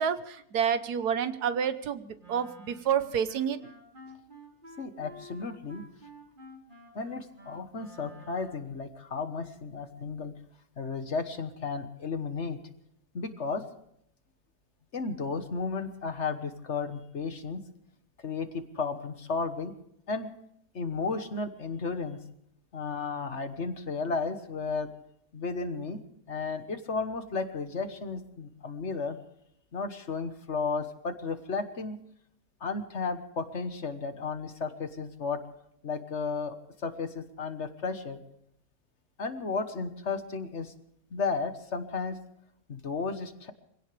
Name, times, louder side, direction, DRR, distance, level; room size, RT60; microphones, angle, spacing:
voice 1, 0.0-3.6, right 8 dB, 70° right, 12 dB, 1.5 m, -29 dB
Wind instrument woodwind instrument, 2.2-8.8, right 1 dB, 30° right, 2.9 m, -51 dB
voice 2, 4.8-5.8 6.9-10.4 10.8-12.6 13.1-13.6 14.9-17.6 18.2-19.7 20.1-20.3 20.7-22.2 22.7-24.9 25.3-26.0 26.3-29.2 29.7-32.0 32.6-35.4 35.8-36.5 36.8-38.2 39.2-40.7 41.1-42.2 42.7-43.5, left 4 dB, 45° left, 9 dB, 1.5 m, -33 dB
25.0 x 17.0 x 3.3 m, 0.74 s
omnidirectional pair, 1.8 m